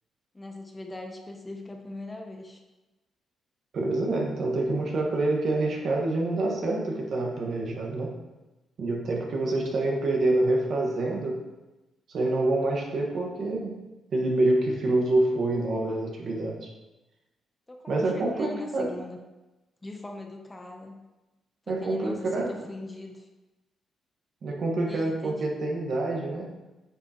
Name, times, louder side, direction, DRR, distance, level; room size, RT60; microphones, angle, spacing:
voice 1, 0.3-2.6 17.7-19.2 19.8-21.0 21.7-23.3 24.9-25.4, left 2 dB, 15° left, 3 dB, 0.8 m, -41 dB
voice 2, 3.7-8.2 8.8-11.4 12.1-13.8 14.1-16.7 17.9-18.9 21.7-22.7 24.4-26.5, right 2 dB, 55° right, 0 dB, 1.5 m, -27 dB
9.1 x 6.8 x 3.0 m, 1.1 s
cardioid pair, 135°, 0 cm